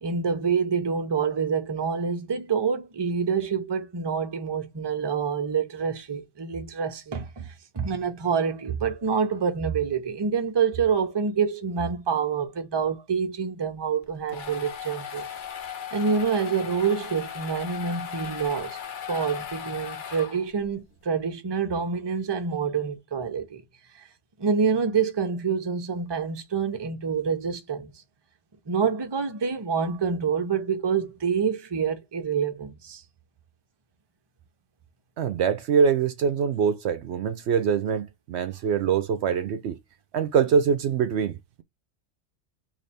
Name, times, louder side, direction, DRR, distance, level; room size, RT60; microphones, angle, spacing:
voice 1, 0.0-15.3 15.9-18.8 19.1-23.6 23.9-24.1 24.4-28.0 28.7-33.0, right 6 dB, 25° right, 0.7 m, -27 dB
sound 1, 14.0-20.7, left 8 dB, 50° left, 0.7 m, -37 dB
voice 2, 35.2-39.8 40.1-41.6, right 6 dB, 70° right, 0.8 m, -24 dB
3.2 x 2.9 x 4.1 m
omnidirectional pair, 1.3 m